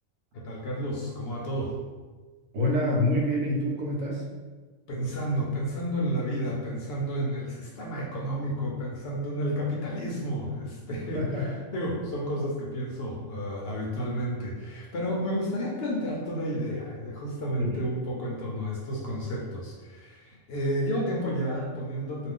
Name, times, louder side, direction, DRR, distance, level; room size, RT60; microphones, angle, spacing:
voice 1, 0.3-1.8 4.9-22.3, equal, 60° left, -3 dB, 0.7 m, -31 dB
voice 2, 2.5-4.2 11.1-11.6 17.6-17.8, left 1 dB, 85° right, -2 dB, 1.1 m, -26 dB
2.4 x 2.4 x 3.5 m, 1.3 s
omnidirectional pair, 1.3 m